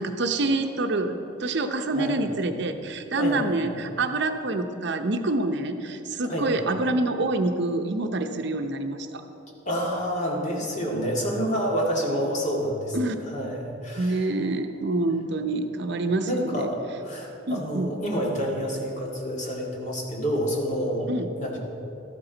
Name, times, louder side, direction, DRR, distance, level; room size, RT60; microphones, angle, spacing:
voice 1, 0.0-9.2 12.9-13.1 14.0-16.7 17.5-17.9 21.1-21.3, right 2 dB, 60° right, 6 dB, 0.7 m, -26 dB
voice 2, 3.1-3.6 6.3-6.5 9.7-13.0 13.3-14.3 16.3-21.1 21.4-21.6, equal, 40° left, -2 dB, 2.0 m, -28 dB
13.5 x 12.0 x 4.0 m, 3.0 s
head